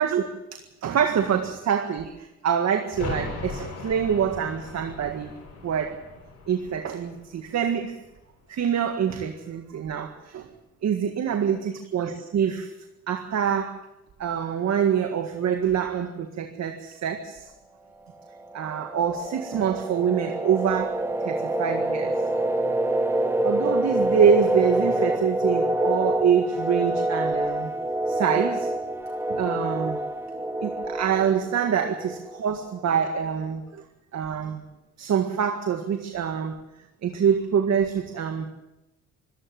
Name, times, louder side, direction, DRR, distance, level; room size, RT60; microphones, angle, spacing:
voice 1, 0.0-5.3 5.6-6.0 6.5-8.0 8.5-10.5 10.8-12.7 13.1-13.8 14.2-17.5 18.5-22.1 23.4-27.7 28.1-28.7 29.3-30.0 30.6-33.8 34.1-34.6 35.0-36.6 37.0-38.5, right 8 dB, 60° right, 6 dB, 1.9 m, -25 dB
sound 1, 2.9-8.5 8.7-8.8, left 3 dB, 70° left, 7.9 m, -38 dB
sound 2, 18.1-32.7, right 1 dB, 10° right, 2.5 m, -27 dB
25.5 x 14.5 x 7.7 m, 0.96 s
cardioid pair, 90°, 30 cm